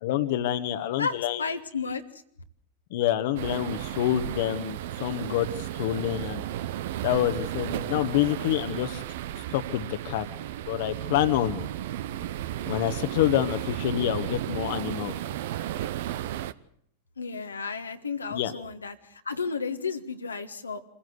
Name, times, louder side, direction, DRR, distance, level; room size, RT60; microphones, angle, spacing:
voice 1, 0.0-1.4 2.9-5.5 5.7-6.4 7.0-9.0 9.5-10.3 10.7-11.7 12.7-15.1 18.3-18.5, left 12 dB, 60° left, 11 dB, 1.3 m, -27 dB
voice 2, 1.0-2.0 17.2-20.8, left 5 dB, 90° left, 6 dB, 1.5 m, -33 dB
sound 1, 3.4-16.5, right 12 dB, 65° right, 0.8 m, -34 dB
25.5 x 16.0 x 8.0 m, 0.68 s
hypercardioid pair, 95°, 0 cm